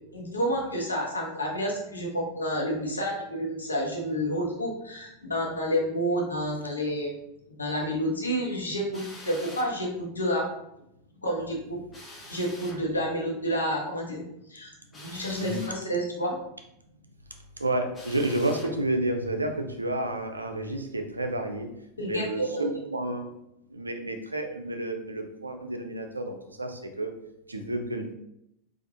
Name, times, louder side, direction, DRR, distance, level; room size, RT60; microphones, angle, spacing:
voice 1, 0.1-7.2 7.6-10.4 11.2-11.8 12.3-14.2 14.5-16.3 22.0-22.7, equal, 85° left, -1 dB, 0.9 m, -29 dB
Drill, 8.9-9.7 11.9-12.8 14.9-15.8 17.9-18.7, left 1 dB, 20° left, 0.9 m, -45 dB
voice 2, 17.6-21.7 22.0-23.3 23.7-27.1 27.5-28.1, right 1 dB, 85° right, 5 dB, 0.4 m, -30 dB
4.1 x 2.5 x 2.8 m, 0.80 s
figure-of-eight pair, 85°, 0 cm